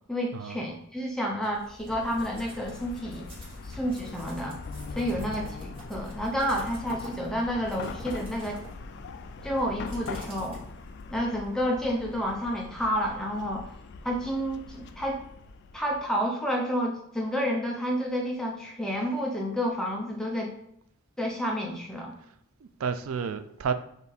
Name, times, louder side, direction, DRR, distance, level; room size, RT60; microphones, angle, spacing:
voice 1, 0.1-3.2 3.6-4.6 4.9-8.6 9.4-10.6 11.1-13.7 14.0-15.2 15.7-20.5 21.2-22.1, equal, ahead, -1 dB, 0.6 m, -30 dB
sound 1, 1.4-11.2, equal, 25° right, 1.2 m, -46 dB
Chatter / Car passing by / Traffic noise roadway noise, 1.9-16.2, left 4 dB, 50° left, 0.3 m, -42 dB
voice 2, 22.6-23.7, right 6 dB, 75° right, 11 dB, 0.4 m, -31 dB
3.5 x 2.7 x 4.0 m, 0.73 s
head